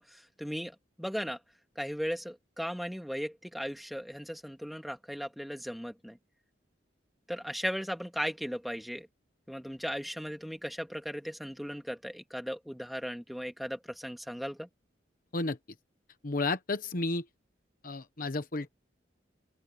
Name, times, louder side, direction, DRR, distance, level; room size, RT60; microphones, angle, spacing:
voice 1, 0.0-1.4 1.8-6.2 7.3-9.1 9.5-14.7, equal, ahead, 2.3 m, -37 dB
voice 2, 16.2-17.2 17.8-18.7, left 3 dB, 50° left, 1.1 m, -32 dB
open air
head